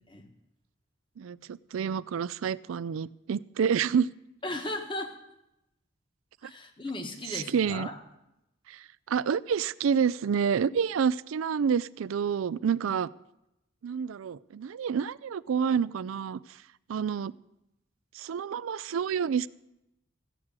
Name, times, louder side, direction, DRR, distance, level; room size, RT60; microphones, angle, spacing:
voice 1, 1.2-4.1 6.4-6.5 7.5-7.9 8.7-8.8 9.1-13.1 13.8-16.4 16.9-17.3 18.2-19.5, right 7 dB, 90° right, 19 dB, 0.4 m, -28 dB
voice 2, 4.4-5.1 6.4-7.9 12.8-12.9, left 1 dB, 25° left, 5 dB, 1.3 m, -36 dB
14.5 x 6.1 x 8.8 m, 0.88 s
head